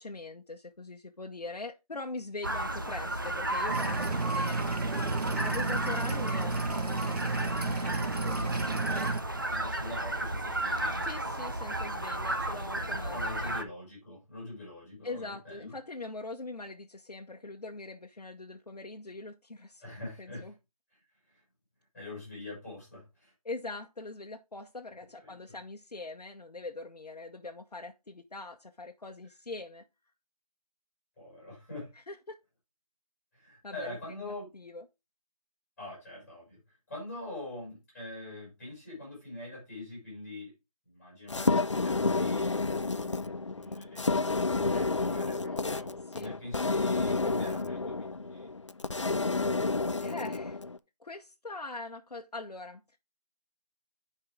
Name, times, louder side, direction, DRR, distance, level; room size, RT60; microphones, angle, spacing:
voice 1, 0.0-4.6 5.4-8.6 11.0-13.6 15.0-19.8 20.2-20.5 23.4-29.8 32.1-32.4 33.6-34.2 34.5-34.8 46.1-46.4 50.0-50.6 51.0-53.0, left 3 dB, 85° left, 1.0 m, -42 dB
sound 1, 2.4-13.6, right 1 dB, 35° right, 0.7 m, -33 dB
sound 2, 3.7-9.2, right 3 dB, 80° right, 0.8 m, -32 dB
voice 2, 9.5-11.1 12.4-15.7 19.8-20.5 21.3-21.4 21.9-23.3 25.2-25.4 31.2-31.9 33.3-34.5 35.8-36.6 36.9-40.5 40.8-48.5, left 2 dB, 5° left, 5.4 m, -44 dB
sound 3, 41.3-50.8, left 3 dB, 50° left, 0.4 m, -30 dB
10.0 x 4.7 x 3.5 m
figure-of-eight pair, 175°, 20 cm